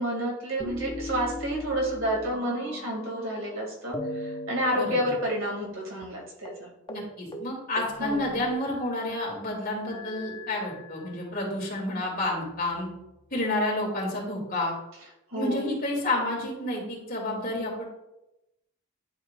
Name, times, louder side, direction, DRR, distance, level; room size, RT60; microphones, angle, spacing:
voice 1, 0.0-6.7 8.0-8.3 15.3-15.6, equal, 60° right, -2 dB, 2.4 m, -30 dB
sound 1, 0.6-3.5 3.9-5.8 6.0-6.1 6.4-6.6 6.9-7.1 7.3-9.0 9.8-11.4 12.1-13.0, left 1 dB, 20° left, 0.5 m, -40 dB
voice 2, 6.9-12.9 13.3-14.7 15.3-17.8, left 1 dB, 40° left, -3 dB, 2.6 m, -30 dB
11.0 x 4.7 x 2.4 m, 0.90 s
head